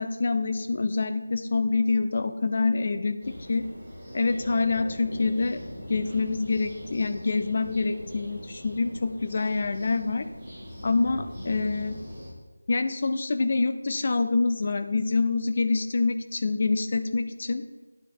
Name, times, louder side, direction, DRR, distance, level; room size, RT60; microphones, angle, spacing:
voice 1, 0.0-3.7 4.1-5.6 5.9-10.3 10.8-12.0 12.7-17.7, left 3 dB, 30° left, 9 dB, 0.5 m, -26 dB
sound 1, 3.2-12.3, equal, 5° right, 3.4 m, -41 dB
9.9 x 7.5 x 4.7 m, 1.2 s
figure-of-eight pair, 175°, 0 cm